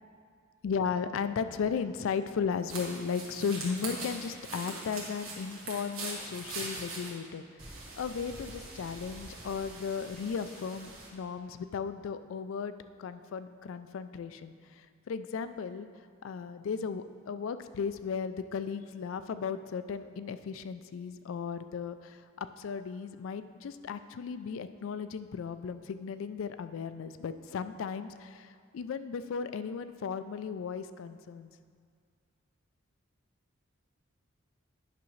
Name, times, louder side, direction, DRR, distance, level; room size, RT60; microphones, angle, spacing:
voice 1, 0.6-7.6 8.0-12.7 13.0-15.9 16.2-31.5, left 6 dB, 70° left, 12 dB, 0.3 m, -36 dB
sound 1, 2.7-7.1 7.6-11.1, right 3 dB, 75° right, 1.6 m, -42 dB
9.5 x 6.0 x 3.1 m, 2.1 s
head